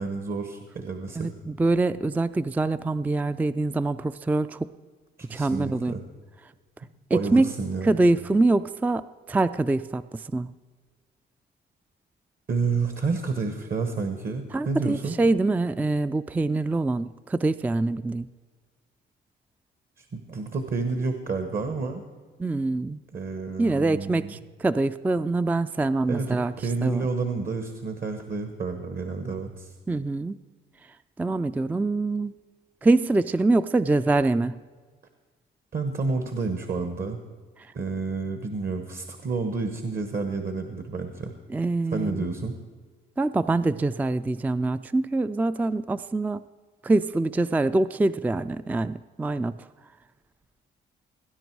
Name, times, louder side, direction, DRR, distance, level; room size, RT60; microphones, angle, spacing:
voice 1, 0.0-1.3 5.2-6.0 7.1-8.0 12.5-15.2 20.0-22.0 23.1-24.3 26.1-29.7 35.7-37.2 37.7-41.3 41.9-42.5, right 4 dB, 50° right, 7 dB, 1.3 m, -30 dB
voice 2, 1.2-4.7 5.3-6.0 7.1-7.5 7.8-10.5 14.5-18.3 22.4-23.0 23.6-26.5 26.8-27.1 29.9-30.4 31.2-32.3 32.8-34.6 41.5-42.4 43.2-46.4 46.8-49.5, right 2 dB, 10° right, 14 dB, 0.3 m, -24 dB
19.0 x 10.0 x 4.7 m, 1.5 s
cardioid pair, 90°, 20 cm